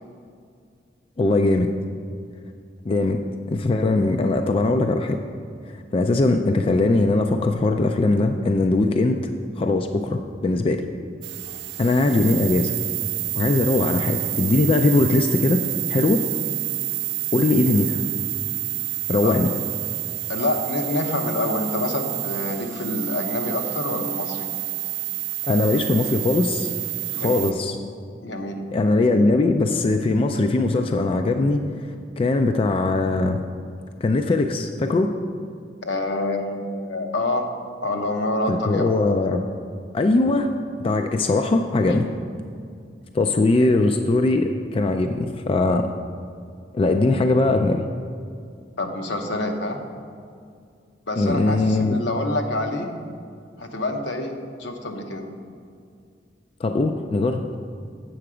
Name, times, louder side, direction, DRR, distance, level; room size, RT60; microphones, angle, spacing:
voice 1, 1.2-1.7 2.9-3.2 3.5-5.2 5.7-9.3 9.6-10.8 11.8-12.7 13.4-15.6 15.9-16.2 17.3-18.0 19.1-19.5 25.5-26.7 27.1-27.8 28.7-33.4 34.0-35.1 38.5-39.4 39.9-40.5 40.8-42.1 43.1-45.9 46.7-47.9 51.2-52.0 56.6-57.4, left 2 dB, 30° left, 5 dB, 0.3 m, -20 dB
sound 1, 11.2-27.5, right 16 dB, 90° right, 0.3 m, -29 dB
voice 2, 20.3-24.5 27.1-27.4 28.2-28.6 35.8-37.5 37.8-38.9 41.8-42.0 43.6-43.7 48.8-49.8 51.1-52.9 53.6-54.3 54.6-55.3, left 2 dB, 75° left, 4 dB, 0.9 m, -27 dB
7.8 x 6.8 x 4.9 m, 2.3 s
head